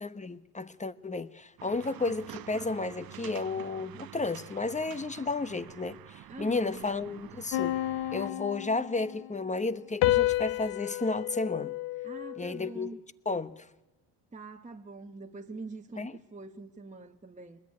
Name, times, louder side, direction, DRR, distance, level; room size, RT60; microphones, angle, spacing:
voice 1, 0.0-7.8 8.1-11.8 12.4-12.9 13.3-13.7 16.0-16.1, left 3 dB, 15° left, 1.0 m, -32 dB
sound 1, 1.6-8.3, right 12 dB, 50° right, 0.9 m, -47 dB
voice 2, 6.3-6.9 12.0-13.0 14.3-17.6, right 3 dB, 15° right, 1.2 m, -44 dB
sound 2, 7.5-9.3 10.0-12.6, left 16 dB, 80° left, 0.9 m, -30 dB
25.0 x 20.5 x 9.7 m
cardioid pair, 95°, 44 cm